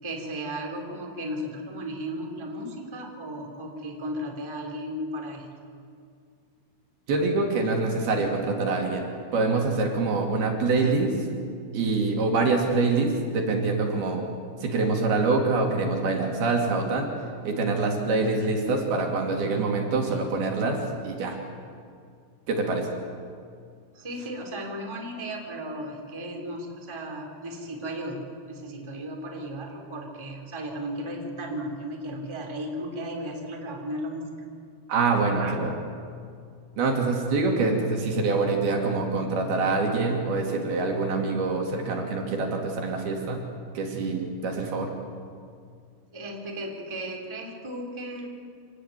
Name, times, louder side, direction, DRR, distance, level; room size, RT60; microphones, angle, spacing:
voice 1, 0.0-5.5 23.9-34.2 35.4-35.5 46.1-48.3, equal, 5° right, 1 dB, 2.8 m, -35 dB
voice 2, 7.1-11.1 11.7-14.3 14.6-17.1 17.4-20.8 21.0-21.4 22.5-22.9 34.9-35.7 36.8-43.4 43.7-44.9, right 3 dB, 60° right, 1 dB, 4.3 m, -25 dB
27.0 x 18.5 x 9.2 m, 2.2 s
omnidirectional pair, 5.2 m